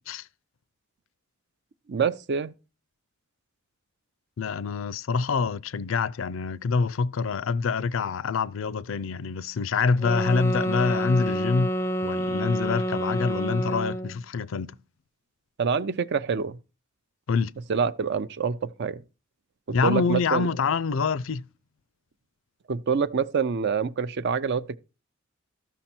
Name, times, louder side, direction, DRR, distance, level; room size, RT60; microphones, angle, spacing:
voice 1, 1.9-2.5 15.6-16.6 17.7-19.0 19.7-20.5 22.7-24.8, right 6 dB, 55° right, 0.5 m, -26 dB
voice 2, 4.4-11.7 12.0-14.7 17.3-17.5 19.7-21.4, left 5 dB, 70° left, 0.4 m, -26 dB
sound 1, 10.0-14.2, equal, 15° left, 0.5 m, -28 dB
13.5 x 6.1 x 4.3 m
head